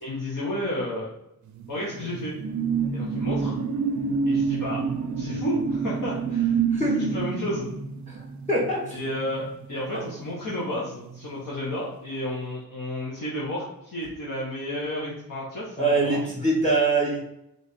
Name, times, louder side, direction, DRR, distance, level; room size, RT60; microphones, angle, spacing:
voice 1, 0.0-1.1 1.7-2.3 2.9-3.5 4.2-4.8 5.2-7.7 8.9-16.2, left 1 dB, 60° left, -6 dB, 1.2 m, -32 dB
sound 1, 1.5-10.5 10.9-11.1, right 5 dB, 55° right, 0.5 m, -28 dB
voice 2, 8.1-9.0 9.9-10.0 15.8-17.2, right 2 dB, 20° left, -4 dB, 1.5 m, -24 dB
3.4 x 3.2 x 4.1 m, 0.82 s
cardioid pair, 75°, 36 cm